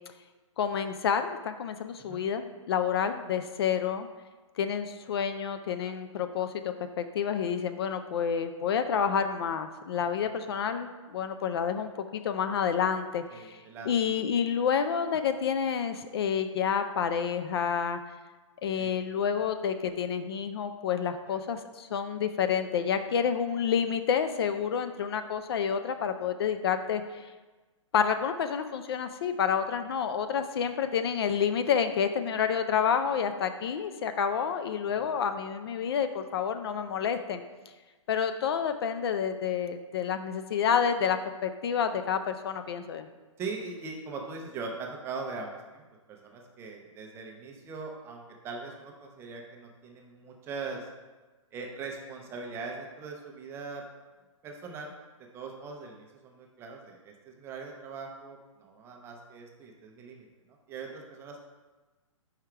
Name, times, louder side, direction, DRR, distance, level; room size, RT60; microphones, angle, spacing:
voice 1, 0.6-4.1 4.6-6.5 7.0-11.9 12.2-13.6 13.9-18.0 18.6-27.3 27.9-37.4 38.1-43.1, left 7 dB, 50° left, 9 dB, 0.4 m, -29 dB
voice 2, 2.0-2.3 13.3-13.9 18.7-18.9 21.3-21.4 35.0-35.1 43.4-45.8 46.1-50.9 51.5-53.8 54.4-54.9 55.2-60.3 60.7-61.4, right 4 dB, 15° right, 1 dB, 0.6 m, -41 dB
4.9 x 4.6 x 4.5 m, 1.2 s
hypercardioid pair, 150°, 17 cm